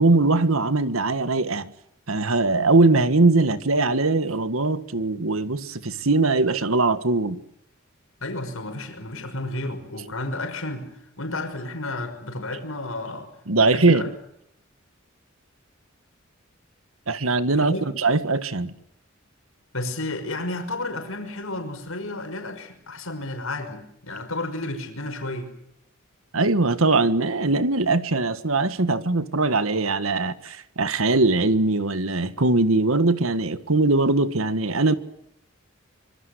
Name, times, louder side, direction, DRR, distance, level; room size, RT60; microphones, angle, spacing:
voice 1, 0.0-1.7 2.1-7.4 13.5-14.1 17.1-18.7 26.3-34.9, right 3 dB, 75° right, 1.6 m, -21 dB
voice 2, 8.2-13.3 13.6-14.1 17.7-17.9 19.7-25.5, left 2 dB, 75° left, 5.8 m, -32 dB
25.5 x 24.5 x 8.1 m
head